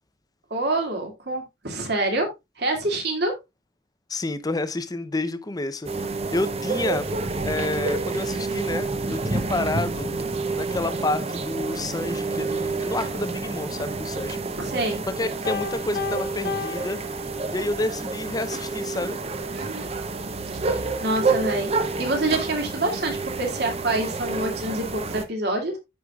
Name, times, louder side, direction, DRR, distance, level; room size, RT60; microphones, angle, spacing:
voice 1, 0.5-2.3 2.6-3.3 14.6-15.0 19.5-19.9 20.7-21.7 22.0-25.8, right 2 dB, 60° right, 2.2 m, -26 dB
voice 2, 4.1-7.1 7.4-10.2 10.6-14.4 15.1-17.0 17.5-19.2, left 2 dB, 20° left, 0.6 m, -29 dB
sound 1, 5.8-25.2, right 3 dB, 35° right, 0.7 m, -29 dB
Piano, 15.5-17.8, left 7 dB, 60° left, 0.7 m, -34 dB
14.0 x 4.8 x 2.3 m
head